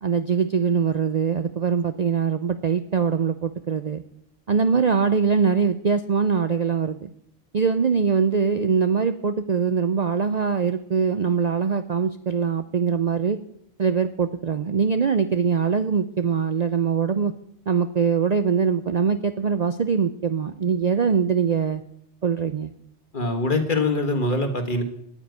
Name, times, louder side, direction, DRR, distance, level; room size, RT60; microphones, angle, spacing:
voice 1, 0.0-4.0 4.5-7.1 7.5-13.4 13.8-17.3 17.7-21.8 22.2-22.7, right 6 dB, 45° right, 10 dB, 0.5 m, -22 dB
voice 2, 23.1-24.8, left 2 dB, 45° left, 6 dB, 1.7 m, -23 dB
10.0 x 9.8 x 9.3 m, 0.74 s
omnidirectional pair, 1.2 m